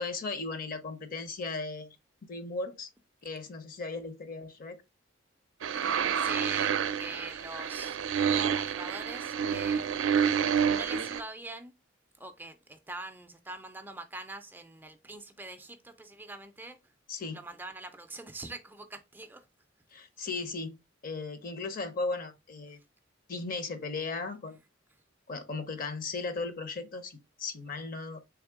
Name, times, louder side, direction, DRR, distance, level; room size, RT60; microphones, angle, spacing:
voice 1, 0.0-2.0 2.3-2.9 3.2-4.8 17.1-17.4 19.9-22.8 23.3-24.6 25.3-28.2, left 3 dB, 50° left, 0.7 m, -36 dB
sound 1, 5.6-11.2, right 7 dB, 85° right, 0.4 m, -29 dB
voice 2, 6.1-9.9 10.7-11.7 12.2-16.8 17.3-19.4, right 2 dB, 10° right, 0.3 m, -44 dB
3.5 x 3.2 x 3.5 m
head